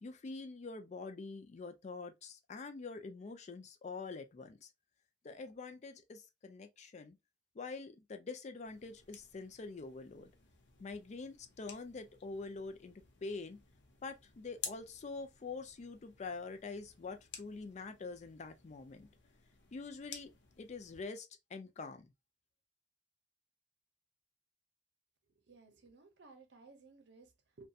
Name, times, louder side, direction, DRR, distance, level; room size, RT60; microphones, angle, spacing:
voice 1, 0.0-4.7 5.2-7.2 7.6-10.3 10.8-13.6 14.0-19.1 19.7-20.3 20.6-22.1, left 4 dB, 40° left, 0.4 m, -45 dB
sound 1, 8.7-21.1, left 7 dB, 80° left, 0.7 m, -54 dB
voice 2, 25.4-27.7, right 3 dB, 70° right, 0.6 m, -59 dB
2.6 x 2.2 x 2.3 m
head